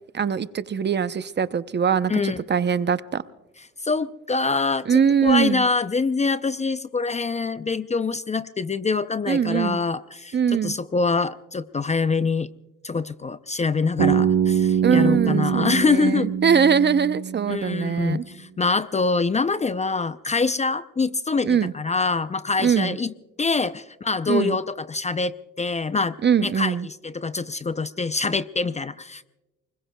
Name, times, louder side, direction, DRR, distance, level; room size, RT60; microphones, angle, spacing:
voice 1, 0.1-3.2 4.9-5.7 9.3-9.8 10.3-10.7 14.8-18.2 21.4-21.7 22.6-23.0 24.3-24.6 26.2-26.9, right 7 dB, 35° right, 13 dB, 0.7 m, -22 dB
voice 2, 2.1-2.4 3.8-12.5 12.8-16.3 17.5-21.5 21.7-23.1 23.4-29.3, left 4 dB, 25° left, 14 dB, 0.5 m, -25 dB
Bass guitar, 14.0-18.0, right 8 dB, 85° right, 4.2 m, -23 dB
29.0 x 21.0 x 2.2 m, 1.0 s
cardioid pair, 90°, 30 cm